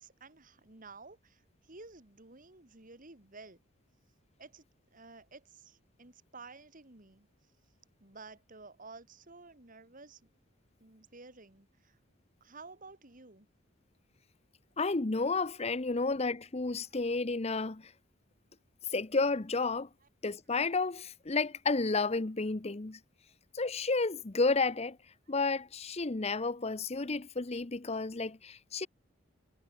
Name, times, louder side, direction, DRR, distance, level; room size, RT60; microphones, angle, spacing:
voice 1, 0.0-3.6 4.4-4.7 4.9-7.3 8.0-10.2 10.8-12.0 12.4-13.5, right 3 dB, 40° right, 2.2 m, -52 dB
voice 2, 14.8-17.9 18.9-19.9 20.2-23.0 23.5-25.0 25.3-28.9, left 3 dB, 30° left, 0.8 m, -31 dB
head